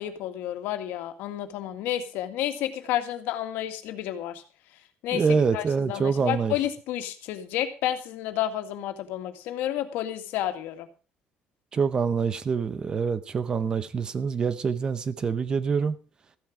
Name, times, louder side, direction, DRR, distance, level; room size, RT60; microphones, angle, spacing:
voice 1, 0.0-4.4 5.0-10.9, left 12 dB, 85° left, 2.0 m, -31 dB
voice 2, 5.1-6.5 11.7-16.0, right 5 dB, 25° right, 0.8 m, -25 dB
15.0 x 11.0 x 4.8 m
cardioid pair, 180°, 3 cm